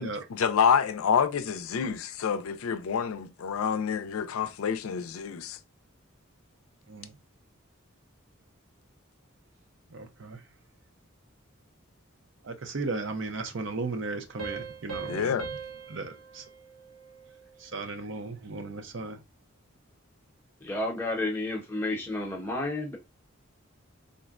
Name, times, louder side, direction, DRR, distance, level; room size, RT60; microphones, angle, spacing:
voice 1, 0.0-5.6 15.1-15.5, left 7 dB, 85° left, 0.4 m, -28 dB
voice 2, 9.9-10.4 12.4-15.4 15.9-16.4 17.6-19.2, right 3 dB, 60° right, 0.5 m, -36 dB
Piano, 14.4-17.7, right 5 dB, 80° right, 1.0 m, -41 dB
voice 3, 20.6-23.0, left 2 dB, 10° left, 0.7 m, -31 dB
3.7 x 2.1 x 2.3 m
head